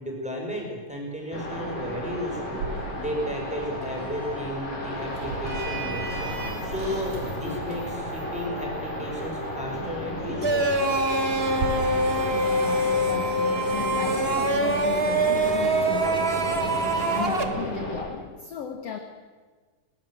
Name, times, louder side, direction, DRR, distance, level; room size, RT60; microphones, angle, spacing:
voice 1, 0.0-10.7, left 1 dB, ahead, -2 dB, 5.8 m, -34 dB
sound 1, 1.3-18.0, left 1 dB, 80° left, 7.9 m, -33 dB
Sliding door, 2.5-11.7, right 4 dB, 80° right, 5.1 m, -38 dB
sound 2, 10.4-17.4, right 2 dB, 40° right, 0.8 m, -24 dB
voice 2, 12.3-16.6 17.1-19.0, left 9 dB, 60° left, 6 dB, 2.0 m, -36 dB
22.0 x 18.5 x 7.7 m, 1.5 s
omnidirectional pair, 3.7 m